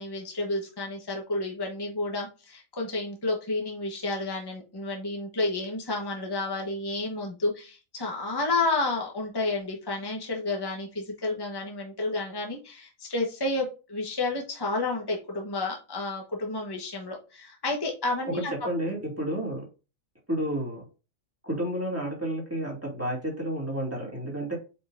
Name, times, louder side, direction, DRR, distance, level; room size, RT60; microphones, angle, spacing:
voice 1, 0.0-18.5, left 2 dB, 20° left, 0 dB, 1.3 m, -31 dB
voice 2, 18.3-19.6 20.3-20.8 21.4-24.6, right 1 dB, 10° right, -3 dB, 2.6 m, -31 dB
7.8 x 4.8 x 2.6 m, 0.31 s
omnidirectional pair, 1.4 m